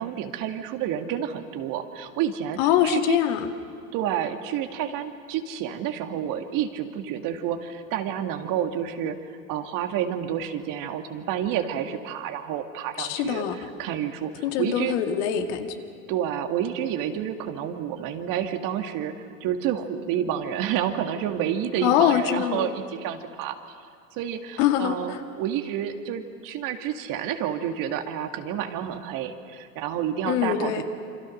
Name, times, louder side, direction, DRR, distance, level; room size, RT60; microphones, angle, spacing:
voice 1, 0.0-3.2 3.9-9.2 9.5-15.0 16.1-23.6 24.1-30.8, right 9 dB, 50° right, 6 dB, 2.2 m, -29 dB
voice 2, 2.6-3.5 13.0-13.6 14.4-15.7 21.8-22.7 24.6-25.2 30.3-30.8, left 10 dB, 60° left, 5 dB, 2.2 m, -23 dB
27.5 x 25.5 x 6.5 m, 2.3 s
hypercardioid pair, 85°, 41 cm